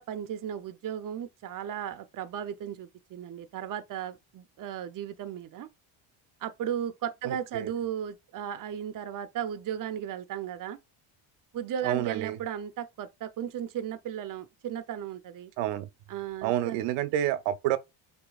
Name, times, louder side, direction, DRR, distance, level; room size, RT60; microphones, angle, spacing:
voice 1, 0.0-5.7 6.4-10.8 11.5-15.5 16.1-16.8, right 9 dB, 40° right, 0.7 m, -35 dB
voice 2, 7.2-7.7 11.8-12.4 15.6-15.9 16.4-17.8, right 12 dB, 85° right, 0.7 m, -29 dB
6.7 x 2.8 x 2.3 m
cardioid pair, 100°, 50 cm